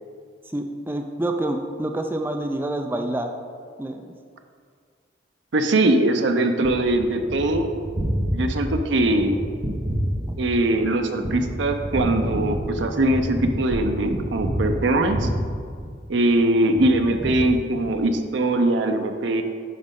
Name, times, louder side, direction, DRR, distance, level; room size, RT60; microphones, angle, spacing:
voice 1, 0.5-3.3 3.8-4.1 10.3-10.4, right 1 dB, 10° right, 4 dB, 0.3 m, -27 dB
voice 2, 5.5-7.7 8.3-9.4 10.4-15.3 16.1-19.4, right 1 dB, 70° right, 5 dB, 0.6 m, -21 dB
Gunshot gunfire, 6.6-16.3 16.7-18.2, equal, 35° right, 0.9 m, -29 dB
9.3 x 5.2 x 3.7 m, 2.1 s
head